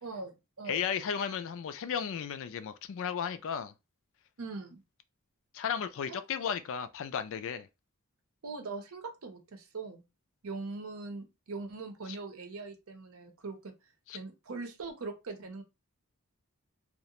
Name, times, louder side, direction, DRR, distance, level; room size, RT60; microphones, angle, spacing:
voice 1, 0.0-0.8 4.4-4.8 6.1-6.2 8.4-10.0 10.4-13.7 14.1-15.6, right 3 dB, 75° right, 0.7 m, -41 dB
voice 2, 0.7-3.7 5.5-7.7 14.1-14.2, left 7 dB, 65° left, 0.3 m, -34 dB
2.4 x 2.1 x 2.8 m
head